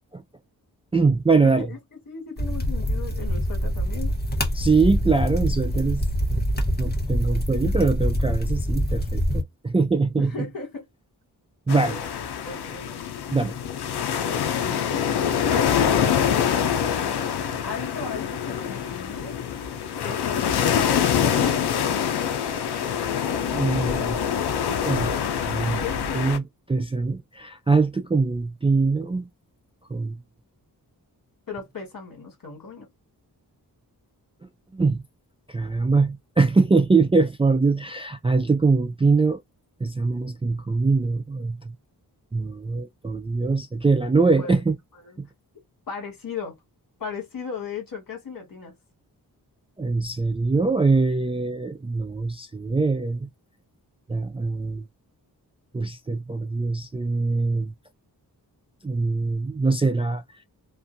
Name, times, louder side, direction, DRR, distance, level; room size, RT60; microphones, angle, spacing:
voice 1, 0.9-1.7 4.6-6.0 6.3-6.4 6.8-10.3 11.7-11.9 13.3-13.5 23.5-23.9 24.9-25.1 25.5-25.8 26.1-26.4 26.7-29.3 29.9-30.2 34.7-35.0 35.5-39.4 39.8-41.6 42.3-44.7 45.2-45.3 49.8-53.3 54.1-54.8 55.7-57.7 58.8-60.2, right 3 dB, 15° right, 0.3 m, -22 dB
voice 2, 1.4-4.1 10.2-10.9 11.7-12.1 12.4-13.0 16.6-19.3 20.0-21.6 23.8-24.2 25.8-26.3 31.5-32.9 44.2-44.6 44.9-45.2 45.9-46.6 47.0-48.7, left 5 dB, 60° left, 1.6 m, -37 dB
sound 1, 2.4-9.4, equal, 25° left, 1.0 m, -25 dB
sound 2, 11.7-26.4, left 8 dB, 85° left, 0.6 m, -25 dB
2.5 x 2.4 x 2.6 m
cardioid pair, 75°, 38 cm